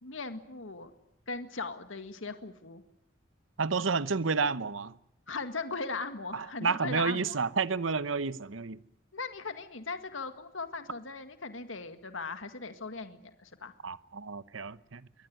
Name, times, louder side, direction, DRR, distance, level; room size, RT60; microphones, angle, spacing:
voice 1, 0.0-0.9 1.3-2.8 5.3-7.4 9.1-13.7, left 4 dB, 85° left, 1.9 m, -39 dB
voice 2, 3.6-5.0 6.3-8.8 13.8-15.0, right 4 dB, 85° right, 0.9 m, -30 dB
23.5 x 18.5 x 9.4 m
head